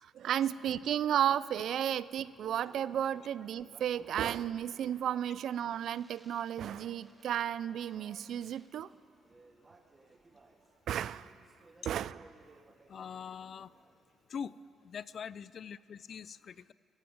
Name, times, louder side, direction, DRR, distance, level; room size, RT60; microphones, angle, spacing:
voice 1, 0.0-8.9 10.9-11.3 11.9-12.2, right 10 dB, 70° right, 19 dB, 0.3 m, -33 dB
Speech, 1.9-14.2, right 3 dB, 25° right, 1.3 m, -61 dB
voice 2, 12.9-13.7 14.3-14.6 14.8-16.7, left 7 dB, 55° left, 19 dB, 0.3 m, -43 dB
14.5 x 9.4 x 7.8 m, 2.2 s
cardioid pair, 90°, 0 cm